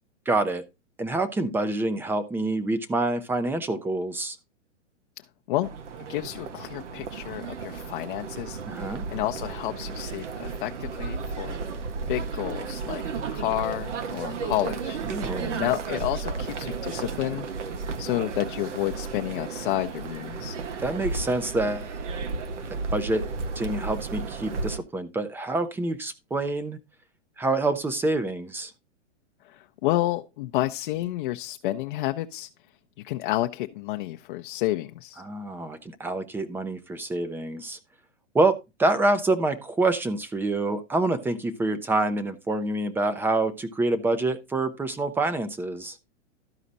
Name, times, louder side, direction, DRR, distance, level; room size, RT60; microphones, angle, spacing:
voice 1, 0.3-0.6 1.0-4.4 8.7-9.1 15.1-15.6 20.8-21.9 22.7-23.3 23.6-26.8 27.4-28.7 35.2-37.8 38.3-46.0, right 2 dB, 5° right, 0.6 m, -27 dB
sound 1, 5.6-24.8, right 4 dB, 75° right, 1.5 m, -33 dB
voice 2, 6.1-11.6 12.1-13.0 13.3-15.0 15.6-17.5 18.0-20.6 29.4-32.5 33.0-35.2, left 16 dB, 45° left, 0.7 m, -30 dB
13.0 x 5.0 x 4.0 m
hypercardioid pair, 140°, 36 cm